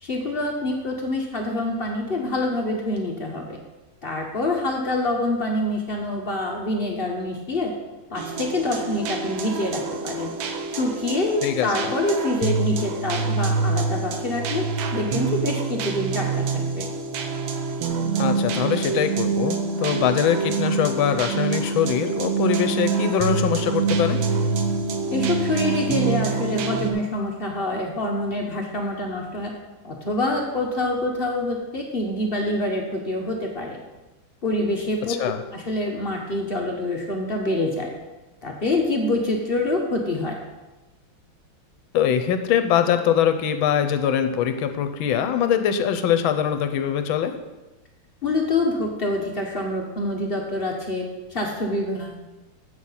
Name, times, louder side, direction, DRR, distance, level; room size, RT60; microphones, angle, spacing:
voice 1, 0.0-3.6 4.0-7.7 8.1-10.3 10.7-14.7 14.9-16.9 25.1-29.5 29.8-33.8 34.4-35.1 35.5-37.9 38.4-40.4 48.2-51.0 51.3-52.3, left 2 dB, 50° left, 1 dB, 0.6 m, -26 dB
sound 1, 8.2-26.9, right 4 dB, 75° right, 1.5 m, -26 dB
voice 2, 18.2-24.2 35.1-35.4 41.9-47.4, left 9 dB, 75° left, 8 dB, 1.4 m, -22 dB
7.8 x 6.4 x 5.5 m, 1.1 s
omnidirectional pair, 2.3 m